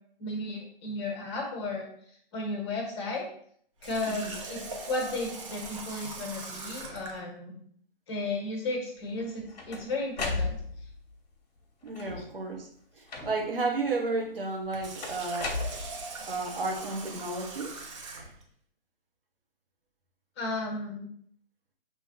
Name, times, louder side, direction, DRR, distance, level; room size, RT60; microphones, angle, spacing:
voice 1, 0.2-1.9 2.3-3.3 3.8-7.6 8.1-10.6 20.4-21.1, left 2 dB, 30° left, 0 dB, 1.2 m, -34 dB
Water tap faucet, 3.8-7.2 14.6-18.4, right 3 dB, 30° right, 0.7 m, -41 dB
sound 1, 9.2-11.0 11.9-12.4 13.1-13.6 15.0-16.3, left 3 dB, 45° left, 1.1 m, -35 dB
voice 2, 11.8-12.7 12.9-15.6 16.3-17.8, right 3 dB, 65° right, 0 dB, 1.2 m, -32 dB
5.7 x 3.1 x 2.8 m, 0.63 s
figure-of-eight pair, 135°, 30 cm